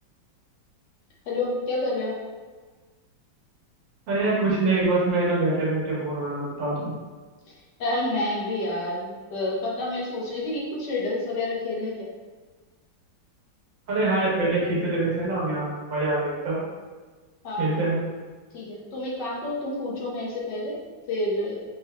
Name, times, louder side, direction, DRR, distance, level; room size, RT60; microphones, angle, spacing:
voice 1, 1.3-2.2 7.8-12.1 17.4-17.8 18.5-20.8 21.1-21.6, left 2 dB, 65° left, -3 dB, 1.3 m, -29 dB
voice 2, 4.1-6.9 13.9-16.6 17.6-18.0, right 2 dB, 70° right, -6 dB, 1.9 m, -24 dB
5.6 x 3.0 x 2.2 m, 1.3 s
omnidirectional pair, 2.1 m